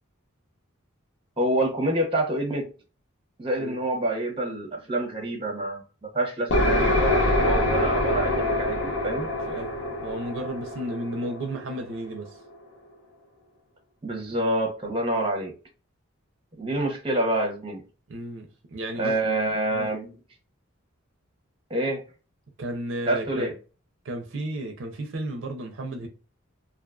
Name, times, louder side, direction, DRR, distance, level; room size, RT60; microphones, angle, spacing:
voice 1, 1.4-2.7 3.4-5.8 6.1-9.3 14.0-15.5 16.6-17.8 19.0-20.1 21.7-22.0 23.1-23.5, right 1 dB, 25° right, 0.7 m, -27 dB
sound 1, 6.5-12.1, left 1 dB, 55° left, 0.6 m, -25 dB
voice 2, 9.4-12.4 18.1-19.1 19.7-19.9 22.6-23.5 24.0-26.1, right 1 dB, 60° right, 0.5 m, -33 dB
2.5 x 2.3 x 2.4 m
head